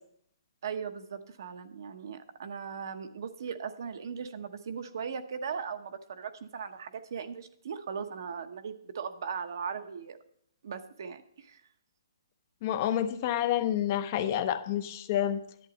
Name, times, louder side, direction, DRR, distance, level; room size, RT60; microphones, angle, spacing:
voice 1, 0.6-10.2 10.6-11.6, right 6 dB, 50° right, 8 dB, 1.0 m, -38 dB
voice 2, 12.6-15.4, left 11 dB, 30° left, 9 dB, 0.7 m, -29 dB
11.0 x 8.9 x 4.1 m, 0.67 s
hypercardioid pair, 170°, 2 cm